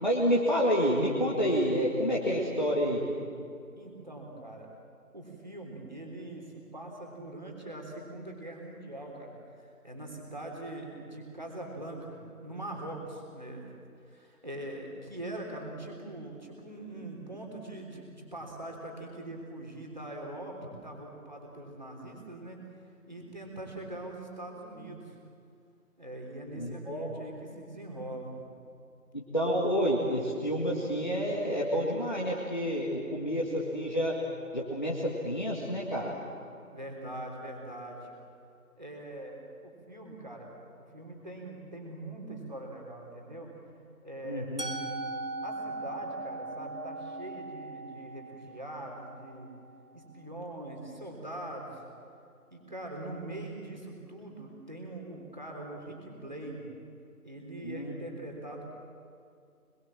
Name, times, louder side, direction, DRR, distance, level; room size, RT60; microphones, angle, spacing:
voice 1, 0.0-3.0 26.6-27.2 29.1-34.1 34.5-36.1 44.2-44.6 57.6-57.8, equal, 30° left, -4 dB, 2.0 m, -29 dB
voice 2, 3.7-4.7 5.1-9.3 9.6-13.7 14.0-25.2 26.0-28.4 36.7-38.0 38.8-43.5 44.0-44.5 45.4-49.5 49.9-51.8 52.5-56.7 57.2-58.7, right 1 dB, 30° right, 0 dB, 3.5 m, -42 dB
Musical instrument, 44.6-50.5, right 2 dB, 80° right, 2.4 m, -40 dB
25.0 x 22.5 x 7.5 m, 2.5 s
figure-of-eight pair, 175°, 45 cm